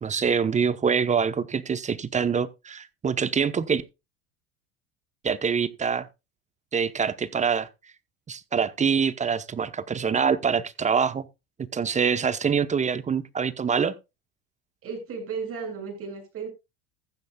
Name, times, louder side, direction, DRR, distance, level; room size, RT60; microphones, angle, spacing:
voice 1, 0.0-3.8 5.2-6.1 6.7-7.7 8.3-11.3 11.7-13.9, right 6 dB, 25° right, 0.9 m, -25 dB
voice 2, 14.8-16.5, right 5 dB, 45° right, 6.9 m, -34 dB
15.0 x 10.5 x 2.3 m
supercardioid pair, 100°, 31 cm